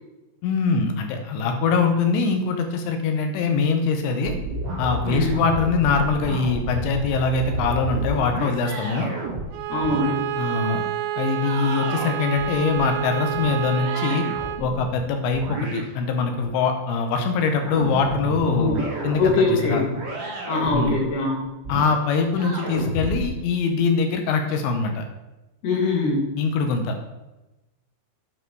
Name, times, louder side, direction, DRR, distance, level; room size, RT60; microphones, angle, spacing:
voice 1, 0.4-4.3 4.8-9.1 10.4-10.9 11.2-14.2 14.6-18.7 19.0-19.9 20.7-21.0 21.7-25.0 26.4-27.0, left 4 dB, 75° left, 5 dB, 2.9 m, -23 dB
sound 1, 4.2-9.5 9.8-10.2 11.4-15.0 15.3-16.5 17.4-19.3 19.9-21.0 21.6-22.0 22.4-23.3, right 1 dB, 55° right, 1.3 m, -31 dB
Bowed string instrument, 9.5-14.7, right 11 dB, 90° right, 3.2 m, -29 dB
voice 2, 9.7-10.2 18.5-18.8 19.2-19.9 20.5-21.3 25.6-26.3, left 3 dB, 60° left, -2 dB, 3.7 m, -22 dB
8.6 x 5.8 x 4.6 m, 1.0 s
omnidirectional pair, 5.7 m